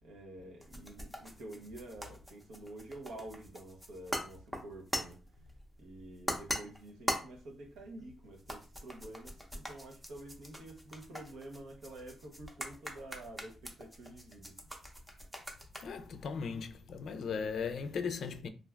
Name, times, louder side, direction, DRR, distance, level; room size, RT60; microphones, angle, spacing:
voice 1, 0.0-5.5 5.8-14.6, right 1 dB, 90° right, 0.8 m, -49 dB
sound 1, 0.6-17.1, equal, 5° right, 0.6 m, -42 dB
voice 2, 15.8-18.5, left 5 dB, 65° left, 0.3 m, -37 dB
2.4 x 2.3 x 3.2 m
cardioid pair, 115°, 0 cm